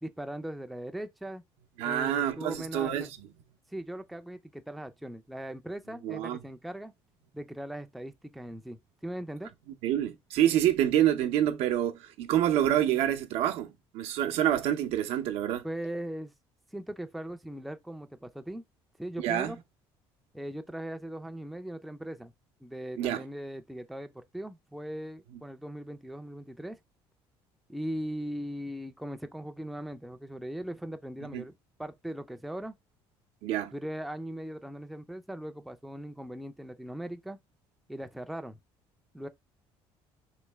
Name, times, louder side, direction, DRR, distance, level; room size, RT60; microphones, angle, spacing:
voice 1, 0.0-1.4 1.8-3.1 3.7-6.9 7.3-9.5 15.6-16.3 16.7-18.6 19.0-19.6 20.3-22.3 22.6-26.8 27.7-31.5 31.8-32.7 33.7-37.4 37.9-38.6 39.1-39.3, right 1 dB, ahead, 0.4 m, -39 dB
voice 2, 1.8-3.1 6.0-6.4 9.8-15.7 19.2-19.5 23.0-23.2 31.3-31.5 33.4-33.7, right 11 dB, 75° right, 0.6 m, -27 dB
3.1 x 2.8 x 3.3 m
cardioid pair, 110°, 10 cm